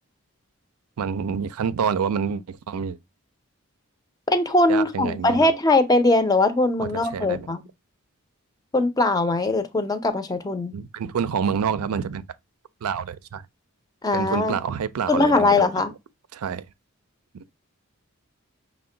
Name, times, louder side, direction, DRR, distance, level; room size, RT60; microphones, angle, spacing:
voice 1, 1.0-3.0 4.7-5.5 6.8-7.5 10.7-12.2 12.8-13.4 14.1-15.6 16.3-16.6 17.3-17.4, right 6 dB, 85° right, 0.4 m, -27 dB
voice 2, 4.3-7.6 8.7-10.8 14.0-14.5 15.1-15.9, left 2 dB, 15° left, 0.5 m, -21 dB
5.7 x 2.2 x 3.7 m
head